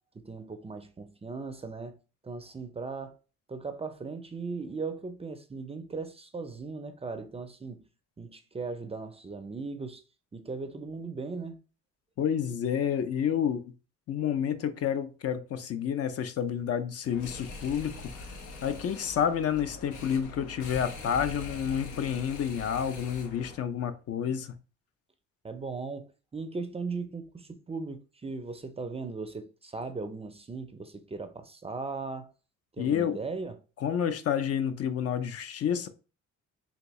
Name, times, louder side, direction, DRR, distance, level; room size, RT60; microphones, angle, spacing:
voice 1, 0.1-2.0 2.2-3.2 3.5-7.8 8.2-10.0 10.3-11.6 25.4-32.3 32.8-33.6, right 4 dB, 20° right, 0.4 m, -38 dB
voice 2, 12.2-13.6 14.1-17.9 18.6-24.6 32.8-33.2 33.8-35.9, left 8 dB, 55° left, 0.5 m, -29 dB
sound 1, 17.1-23.6, left 2 dB, 85° left, 0.9 m, -43 dB
3.4 x 2.7 x 3.0 m
cardioid pair, 90°, 30 cm